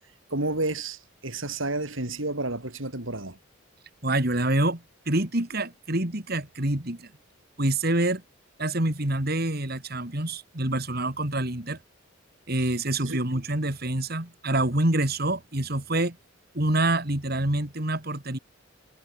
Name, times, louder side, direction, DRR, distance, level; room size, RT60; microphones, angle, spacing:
voice 1, 0.3-3.4 12.6-12.7 13.0-13.2, right 2 dB, 75° right, 5.3 m, -31 dB
voice 2, 4.0-7.1 7.6-8.2 8.6-11.8 12.5-16.2 16.5-18.4, right 1 dB, 50° right, 3.0 m, -26 dB
head